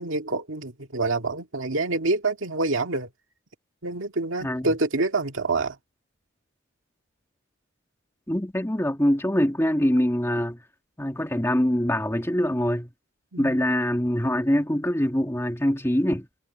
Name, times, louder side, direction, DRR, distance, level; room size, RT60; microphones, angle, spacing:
voice 1, 0.0-3.1 3.8-5.8 13.3-13.6, right 3 dB, 75° right, 2.0 m, -27 dB
voice 2, 8.3-10.6 11.0-12.9 13.4-16.3, equal, 10° left, 1.7 m, -24 dB
head